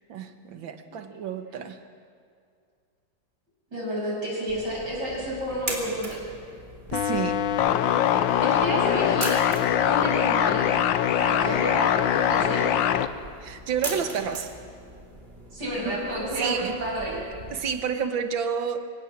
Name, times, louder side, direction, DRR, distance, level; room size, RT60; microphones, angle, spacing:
voice 1, 0.1-1.8 6.9-7.5 11.5-11.6 13.4-14.5 15.8-16.0 16.4-16.8 17.1-18.9, right 7 dB, 90° right, 8 dB, 2.0 m, -30 dB
voice 2, 3.7-6.2 8.4-9.4 9.8-10.7 11.2-11.9 12.3-12.7 15.5-17.2, equal, 60° right, -4 dB, 7.9 m, -30 dB
Comb Counter, 4.5-17.6, right 1 dB, 30° right, 3.3 m, -41 dB
sound 1, 6.9-13.1, left 10 dB, 80° left, 1.5 m, -23 dB
24.5 x 18.0 x 7.4 m, 2.3 s
omnidirectional pair, 2.0 m